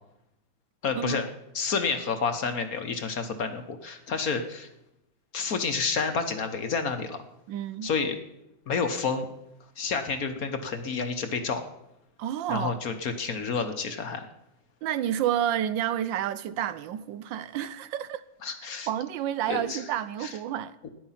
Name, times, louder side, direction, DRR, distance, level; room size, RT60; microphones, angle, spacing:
voice 1, 0.8-1.3 1.5-4.7 5.3-7.2 7.8-8.2 8.7-9.3 9.8-11.7 12.5-14.3 18.4-18.9 19.5-19.8 20.2-20.4 20.8-20.9, left 5 dB, 55° left, 1.3 m, -29 dB
voice 2, 7.5-7.9 12.2-12.7 14.8-18.2 18.9-20.9, right 11 dB, 75° right, 1.3 m, -30 dB
13.5 x 10.0 x 5.7 m
omnidirectional pair, 2.1 m